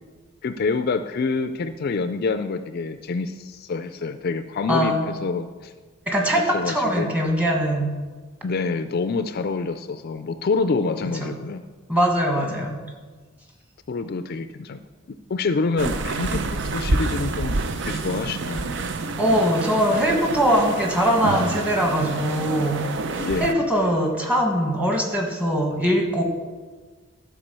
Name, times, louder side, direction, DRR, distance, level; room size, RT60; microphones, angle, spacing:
voice 1, 0.4-5.7 6.5-7.2 8.4-11.6 12.4-12.6 13.9-14.8 15.3-17.6 17.8-18.7 23.1-23.5, left 4 dB, 50° left, 10 dB, 0.4 m, -27 dB
voice 2, 4.7-5.0 6.1-7.9 11.2-11.3 11.9-12.8 19.2-26.2, equal, 5° right, 1 dB, 1.4 m, -22 dB
sound 1, 15.8-23.5, right 3 dB, 60° right, 0.6 m, -28 dB
12.0 x 4.8 x 6.8 m, 1.4 s
head